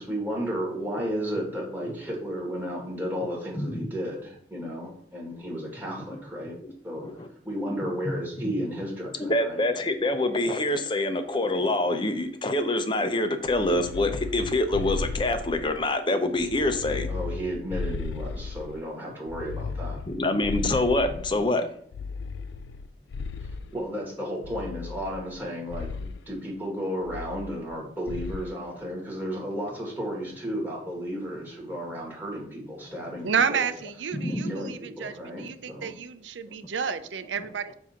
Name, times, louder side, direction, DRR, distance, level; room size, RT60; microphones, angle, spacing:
voice 1, 0.0-6.5 6.8-7.1 7.4-9.7 17.1-20.0 23.4-33.7 34.3-35.9, equal, 10° right, -3 dB, 1.9 m, -33 dB
voice 2, 3.6-3.9 6.6-6.7 7.0-7.3 7.6-7.9 8.4-8.5 9.3-17.1 20.1-21.7 33.3-33.4 34.1-34.6, left 2 dB, 25° left, 8 dB, 0.6 m, -26 dB
sound 1, 13.4-15.9 16.4-18.8 19.3-21.4 21.9-23.8 24.4-25.4 25.7-26.2 27.1-27.8 28.1-28.5, left 4 dB, 80° left, 0.3 m, -35 dB
voice 3, 33.2-37.7, right 6 dB, 90° right, 11 dB, 0.5 m, -30 dB
7.4 x 2.7 x 5.8 m, 0.63 s
head